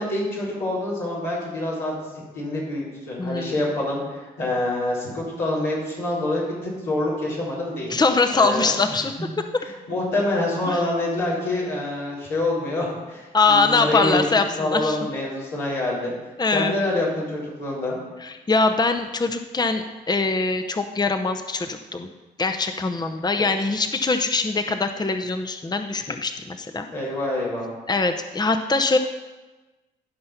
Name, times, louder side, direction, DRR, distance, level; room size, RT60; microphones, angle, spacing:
voice 1, 0.0-2.1 2.3-7.9 8.3-8.7 9.6-14.2 14.6-16.1 16.5-18.0 23.4-23.5 26.9-27.7, left 2 dB, 90° left, -8 dB, 4.1 m, -26 dB
voice 2, 3.2-3.5 7.9-9.1 10.7-10.8 13.3-14.4 14.7-15.0 16.4-16.7 18.2-22.1 22.4-26.9 27.9-29.0, left 3 dB, 20° left, 7 dB, 0.8 m, -22 dB
13.0 x 5.6 x 5.7 m, 1.2 s
hypercardioid pair, 45°, 20 cm